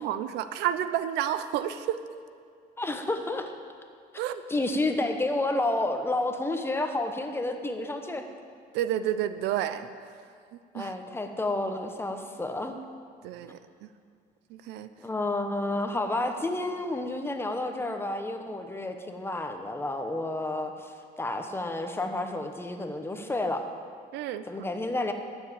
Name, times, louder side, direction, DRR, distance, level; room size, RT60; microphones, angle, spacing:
voice 1, 0.0-2.0 4.2-4.4 8.7-9.9 10.7-10.9 13.2-13.6 14.5-14.9 24.1-24.4, right 11 dB, 85° right, 12 dB, 0.6 m, -30 dB
voice 2, 2.8-3.5 4.5-8.2 10.7-12.7 15.0-23.6 24.5-25.1, left 2 dB, 15° left, 6 dB, 1.1 m, -30 dB
12.0 x 7.4 x 8.5 m, 2.2 s
cardioid pair, 110°, 17 cm